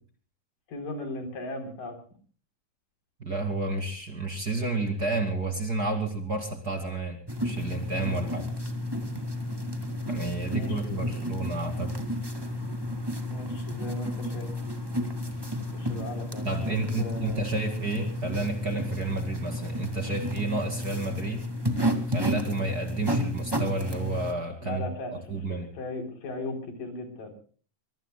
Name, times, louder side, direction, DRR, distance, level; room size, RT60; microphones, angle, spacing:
voice 1, 0.7-2.0 8.1-8.4 10.5-11.4 12.8-14.5 15.7-17.4 24.6-27.3, left 2 dB, 70° left, 6 dB, 5.5 m, -38 dB
voice 2, 3.2-8.4 10.1-12.0 16.4-21.4 22.1-24.8 25.3-25.7, right 3 dB, 30° right, 5 dB, 2.6 m, -31 dB
sound 1, 7.3-24.3, left 1 dB, 10° right, 1.5 m, -32 dB
24.0 x 23.5 x 2.3 m, 0.42 s
omnidirectional pair, 3.9 m